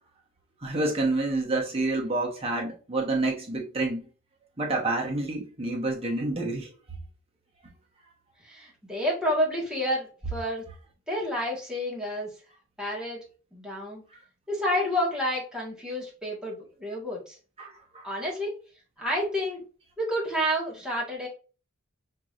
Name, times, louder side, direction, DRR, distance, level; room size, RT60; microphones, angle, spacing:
voice 1, 0.6-4.0 4.6-6.7 17.6-18.1, right 2 dB, 30° right, 1.0 m, -28 dB
voice 2, 8.4-10.6 11.1-12.3 12.8-13.2 13.5-14.0 14.5-17.4 18.0-18.5 19.0-19.7 20.0-21.3, equal, 5° right, 1.4 m, -29 dB
4.7 x 3.0 x 2.4 m
head